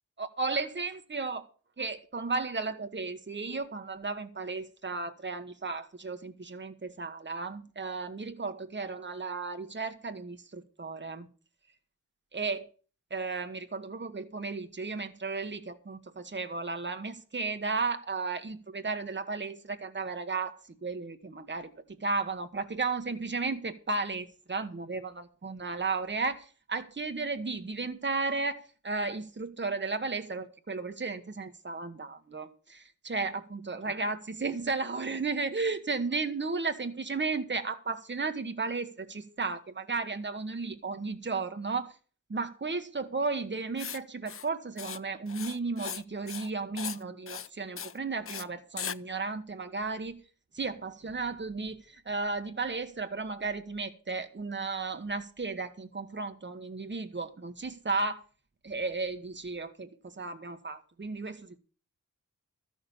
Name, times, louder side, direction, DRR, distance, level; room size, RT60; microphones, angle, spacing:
voice 1, 0.2-1.4 1.8-11.3 12.3-12.7 13.1-21.7 22.0-42.0 42.3-50.2 50.5-58.2 58.6-61.6, right 4 dB, 35° right, 1.3 m, -34 dB
Writing, 43.8-44.0 44.3-44.5 44.8-45.0 45.3-46.0 46.3-46.5 46.8-47.0 47.3-47.5 47.8-47.9 48.3-48.4 48.8-49.0, left 7 dB, 45° left, 0.5 m, -38 dB
13.5 x 6.5 x 7.1 m
wide cardioid pair, 145°, 32 cm